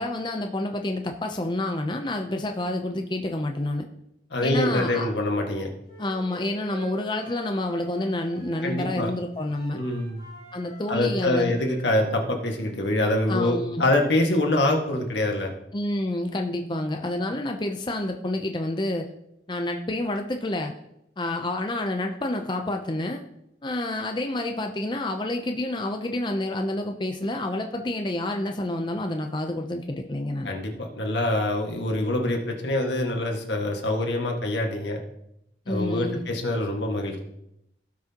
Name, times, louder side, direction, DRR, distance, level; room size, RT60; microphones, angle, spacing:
voice 1, 0.0-3.8 4.4-5.1 6.0-9.8 10.5-11.6 13.3-13.8 15.7-19.1 19.5-20.7 21.2-23.2 23.6-30.5 35.7-36.2, left 1 dB, 25° left, 4 dB, 0.6 m, -28 dB
voice 2, 4.3-5.7 8.6-9.1 9.7-10.2 10.9-15.5 30.4-35.0 35.7-37.2, left 1 dB, 80° left, 2 dB, 1.7 m, -25 dB
Wind instrument woodwind instrument, 5.8-9.0 9.3-12.8, right 1 dB, 35° right, 4.2 m, -47 dB
16.5 x 6.2 x 2.9 m, 0.82 s
head